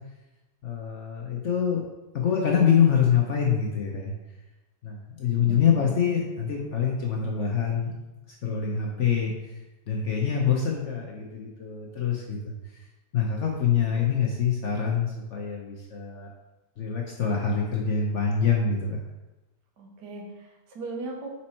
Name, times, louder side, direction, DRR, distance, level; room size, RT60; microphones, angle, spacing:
voice 1, 0.6-1.8 2.1-4.1 4.8-8.0 8.4-9.6 9.9-12.5 13.1-16.3 16.8-19.0, left 7 dB, 60° left, -1 dB, 0.8 m, -25 dB
voice 2, 5.4-6.1 19.8-21.3, right 2 dB, 75° right, 0 dB, 1.6 m, -39 dB
5.3 x 4.3 x 4.2 m, 1.1 s
omnidirectional pair, 1.8 m